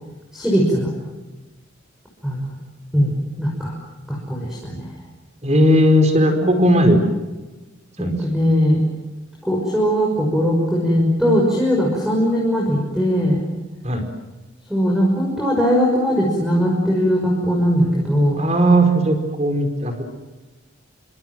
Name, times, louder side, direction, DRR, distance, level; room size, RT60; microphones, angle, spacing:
voice 1, 0.3-0.9 2.2-2.5 2.9-3.7 4.1-4.9 6.4-6.8 8.0-8.8 9.5-13.4 14.7-18.4, equal, ahead, -2 dB, 6.0 m, -19 dB
voice 2, 5.4-7.0 8.0-8.2 13.8-14.0 18.4-20.0, right 1 dB, 30° right, 6 dB, 4.7 m, -17 dB
29.5 x 25.5 x 7.6 m, 1.2 s
head